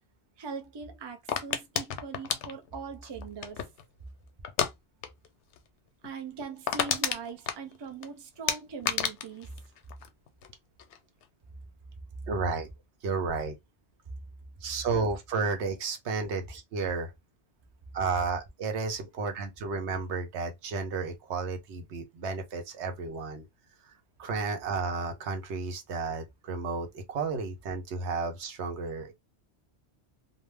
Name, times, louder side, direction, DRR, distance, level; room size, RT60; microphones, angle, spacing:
voice 1, 0.4-3.7 6.0-9.5, right 5 dB, 40° right, 0.4 m, -41 dB
sound 1, 1.3-3.8 4.4-4.7 5.0-5.3 5.5-5.6 6.0-6.1 6.4-8.1 8.5-10.5 10.8-11.2, left 8 dB, 90° left, 0.9 m, -31 dB
voice 2, 12.3-12.7 13.0-13.5 14.6-17.1 17.9-23.5 23.8-23.9 24.2-29.1, right 4 dB, 85° right, 1.0 m, -32 dB
2.6 x 2.0 x 3.3 m
omnidirectional pair, 1.1 m